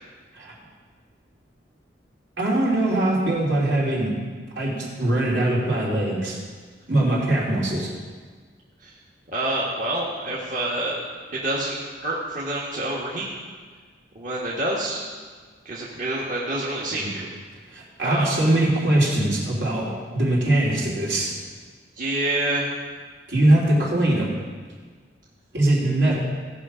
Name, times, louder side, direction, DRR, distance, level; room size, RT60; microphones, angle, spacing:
voice 1, 2.4-4.2 4.5-6.4 6.9-7.9 17.0-17.1 17.7-21.4 23.3-24.4 25.5-26.2, right 1 dB, 75° right, -5 dB, 3.1 m, -22 dB
voice 2, 9.3-11.0 11.3-13.3 14.1-15.0 15.6-17.3 18.0-18.4 22.0-22.7, right 1 dB, 45° right, -6 dB, 1.5 m, -27 dB
17.5 x 5.9 x 5.0 m, 1.5 s
head